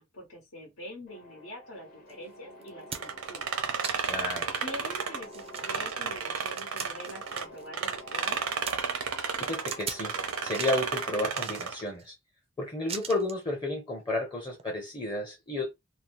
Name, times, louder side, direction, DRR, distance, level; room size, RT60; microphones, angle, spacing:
voice 1, 0.0-3.5 4.6-8.4, left 1 dB, 80° left, 1.1 m, -45 dB
sound 1, 1.1-11.1, left 1 dB, 40° left, 0.9 m, -49 dB
sound 2, 2.1-2.2 2.6-3.3 3.8-4.3 4.7-4.8 5.3-7.7 8.0-8.7 9.7-10.1 10.4-10.9 11.4-12.1 12.9-13.4 14.5-14.7, right 6 dB, 30° right, 0.4 m, -40 dB
sound 3, 2.9-7.4 7.7-11.8, right 6 dB, 80° right, 0.6 m, -32 dB
voice 2, 4.1-4.5 9.4-10.2 10.4-12.1 12.6-15.7, left 2 dB, 20° left, 0.6 m, -32 dB
2.7 x 2.1 x 3.0 m
head